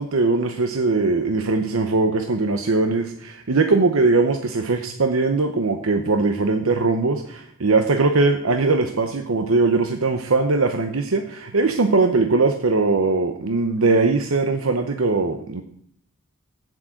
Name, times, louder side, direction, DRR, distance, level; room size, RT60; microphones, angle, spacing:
voice 1, 0.0-15.6, right 3 dB, 80° right, 5 dB, 0.8 m, -20 dB
7.6 x 7.5 x 7.7 m, 0.64 s
head